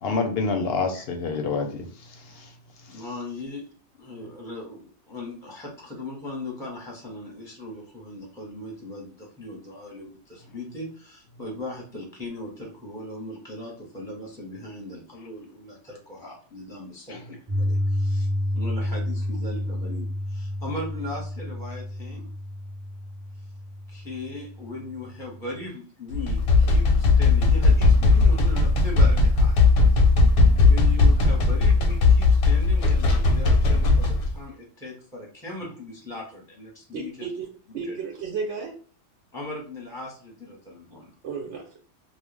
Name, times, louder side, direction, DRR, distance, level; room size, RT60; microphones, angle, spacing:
voice 1, 0.0-2.5 17.1-17.2, left 4 dB, 65° left, 0.7 m, -28 dB
voice 2, 2.9-3.7 4.0-18.3 18.5-22.3 23.9-29.6 29.9-30.1 30.5-37.3 37.9-38.0 39.3-41.1, left 1 dB, 5° left, 0.7 m, -38 dB
Piano, 17.5-25.6, left 1 dB, 30° right, 0.5 m, -30 dB
sound 1, 26.1-34.3, left 3 dB, 85° left, 1.0 m, -18 dB
voice 3, 36.9-37.5 37.7-38.7 41.2-41.8, right 5 dB, 70° right, 0.9 m, -33 dB
2.4 x 2.1 x 3.1 m
omnidirectional pair, 1.3 m